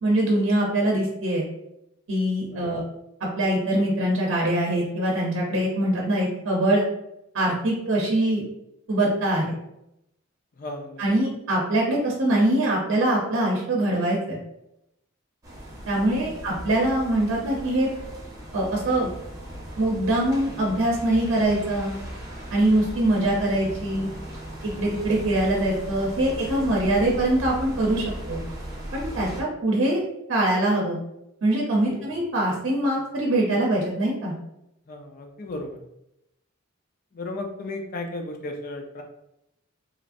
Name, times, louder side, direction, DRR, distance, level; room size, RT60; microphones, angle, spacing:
voice 1, 0.0-1.5 2.1-2.8 3.2-6.8 7.3-8.4 8.9-9.5 11.0-14.4 15.9-17.9 18.5-19.1 19.8-21.9 22.5-24.1 24.8-28.4 28.9-30.0 30.3-31.0 31.4-34.3, right 1 dB, 65° right, -2 dB, 0.7 m, -23 dB
voice 2, 10.6-11.0 31.8-32.1 34.9-35.8 37.1-39.0, left 2 dB, 45° left, 4 dB, 0.4 m, -35 dB
sound 1, 15.4-29.4, equal, 15° right, 0.7 m, -37 dB
3.1 x 2.4 x 2.5 m, 0.82 s
head